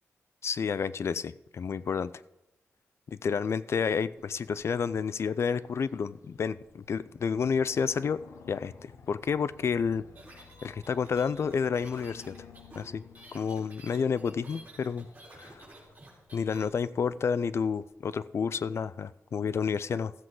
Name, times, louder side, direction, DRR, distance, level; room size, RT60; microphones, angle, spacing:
voice 1, 0.4-2.1 3.1-8.2 8.5-8.7 9.1-10.0 10.6-12.3 12.8-13.0 13.3-15.1 15.3-15.7 16.3-20.1, left 6 dB, 60° left, 0.4 m, -30 dB
sound 1, 4.1-17.9, left 6 dB, 75° left, 1.0 m, -55 dB
sound 2, 10.1-16.6, right 2 dB, 30° right, 4.2 m, -51 dB
15.0 x 7.6 x 3.8 m
cardioid pair, 85°, 5 cm